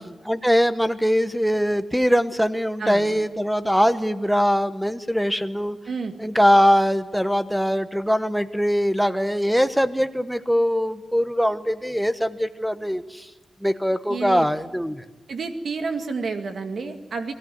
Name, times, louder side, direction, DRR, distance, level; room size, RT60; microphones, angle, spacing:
voice 1, 0.3-5.8 6.2-13.3 13.6-15.0, equal, ahead, 11 dB, 1.1 m, -22 dB
voice 2, 2.8-3.1 5.9-6.1 14.1-14.5 15.3-17.3, right 4 dB, 60° right, 6 dB, 2.1 m, -30 dB
22.0 x 17.0 x 9.3 m, 1.2 s
wide cardioid pair, 125°, 0 cm